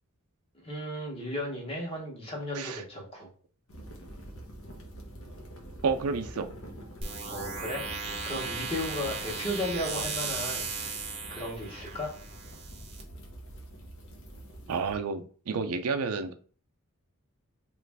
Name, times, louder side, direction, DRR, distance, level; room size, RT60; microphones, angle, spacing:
voice 1, 0.5-3.3 7.3-11.0 11.3-12.1, left 1 dB, 25° left, 0 dB, 0.9 m, -35 dB
sound 1, 3.7-15.0, right 1 dB, 70° left, 0.8 m, -45 dB
voice 2, 5.8-6.5 14.7-16.3, right 5 dB, 90° right, 7 dB, 0.5 m, -30 dB
sound 2, 7.0-13.0, right 4 dB, 30° right, 0.6 m, -36 dB
3.1 x 2.4 x 3.3 m, 0.41 s
head